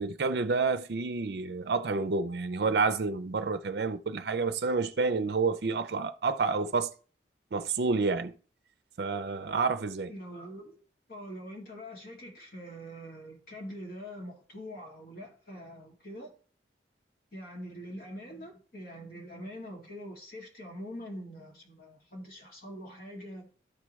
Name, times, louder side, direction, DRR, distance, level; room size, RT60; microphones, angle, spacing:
voice 1, 0.0-6.9 7.5-8.3 9.0-10.1, right 4 dB, 60° right, 0.5 m, -29 dB
voice 2, 10.1-10.8 11.1-16.3 17.3-23.5, equal, 55° left, 2.3 m, -44 dB
12.5 x 4.8 x 3.1 m
head